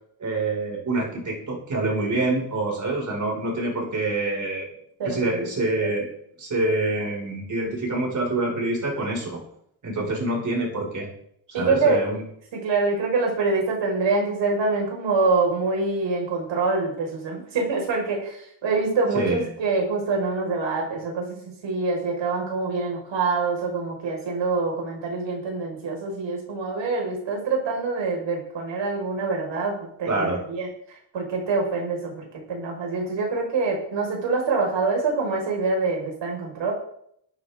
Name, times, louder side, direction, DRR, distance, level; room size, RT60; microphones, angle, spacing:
voice 1, 0.2-4.7 5.0-6.1 6.4-9.4 9.8-11.1 11.5-12.2 19.1-19.5 30.1-30.4, right 2 dB, 35° right, -1 dB, 6.4 m, -26 dB
voice 2, 5.0-5.5 5.8-5.9 11.5-12.1 12.5-21.4 21.6-30.7 31.1-36.7, right 3 dB, 65° right, -1 dB, 6.1 m, -25 dB
17.5 x 9.9 x 4.0 m, 0.70 s
cardioid pair, 115°, 48 cm